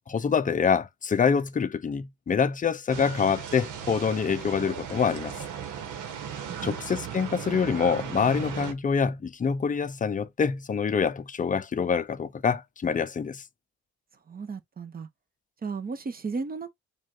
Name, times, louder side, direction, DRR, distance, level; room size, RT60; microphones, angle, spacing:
voice 1, 0.1-5.4 6.6-13.4, left 6 dB, 25° left, 0.6 m, -26 dB
sound 1, 2.9-8.7, right 8 dB, 85° right, 1.1 m, -37 dB
voice 2, 6.1-6.8 14.3-15.1 15.6-16.7, right 4 dB, 30° right, 0.9 m, -35 dB
4.9 x 2.5 x 3.7 m
cardioid pair, 90°, 30 cm